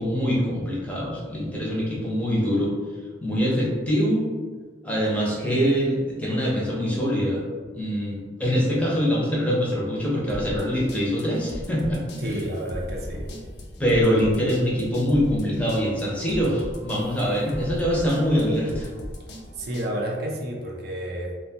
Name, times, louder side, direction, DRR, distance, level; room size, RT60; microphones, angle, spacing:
voice 1, 0.0-2.7 3.2-4.2 4.8-7.4 7.7-12.3 13.8-18.9, equal, 10° left, -5 dB, 0.5 m, -24 dB
sound 1, 10.3-19.9, equal, 65° left, 0.4 m, -38 dB
voice 2, 12.2-13.3 19.6-21.4, right 1 dB, 60° right, -1 dB, 0.4 m, -30 dB
2.5 x 2.2 x 2.7 m, 1.5 s
head